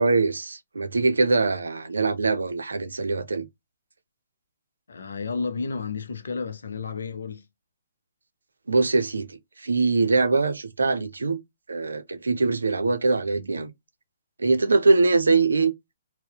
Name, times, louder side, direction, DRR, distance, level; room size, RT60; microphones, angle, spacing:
voice 1, 0.0-3.5 8.7-11.4 11.7-13.7 14.4-15.7, right 3 dB, 90° right, 0.4 m, -22 dB
voice 2, 4.9-7.5, left 5 dB, 75° left, 0.5 m, -31 dB
2.7 x 2.0 x 2.2 m
hypercardioid pair, 140°, 0 cm